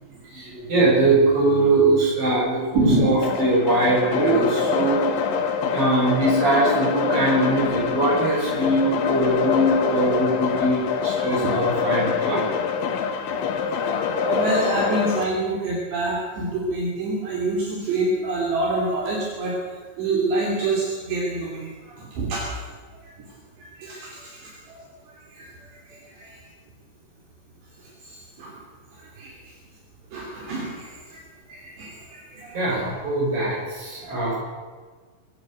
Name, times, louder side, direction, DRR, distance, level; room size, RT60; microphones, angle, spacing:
voice 1, 0.0-5.2 5.6-12.4 32.5-34.4, right 2 dB, 25° right, -4 dB, 7.7 m, -22 dB
voice 2, 2.7-3.1 13.8-14.0 14.2-19.6 20.0-22.5 23.0-23.1 23.6-24.8 25.1-26.4 28.0-28.6 29.0-29.4 30.1-31.2 31.5-32.6 34.0-34.4, right 2 dB, 60° right, -3 dB, 5.2 m, -27 dB
sound 1, 3.2-15.2, left 6 dB, 75° left, 3.8 m, -25 dB
23.5 x 14.0 x 7.9 m, 1.5 s
omnidirectional pair, 5.8 m